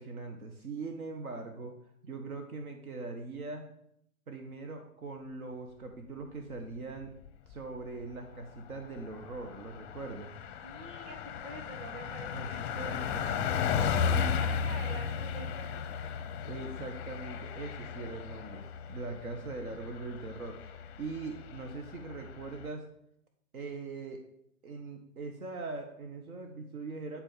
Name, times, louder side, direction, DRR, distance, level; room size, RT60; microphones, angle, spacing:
voice 1, 0.0-1.7 2.0-3.7 4.3-7.1 7.5-10.3 12.3-14.4 16.4-22.9 23.5-24.2 24.6-27.2, right 3 dB, 80° right, 4 dB, 1.5 m, -41 dB
Car passing by, 7.0-7.7 8.0-8.1 8.4-22.7, left 7 dB, 20° left, 0.6 m, -35 dB
voice 2, 10.6-13.8 14.1-15.9, right 3 dB, 40° right, 2 dB, 2.7 m, -47 dB
9.9 x 4.4 x 7.2 m, 0.74 s
hypercardioid pair, 135°, 43 cm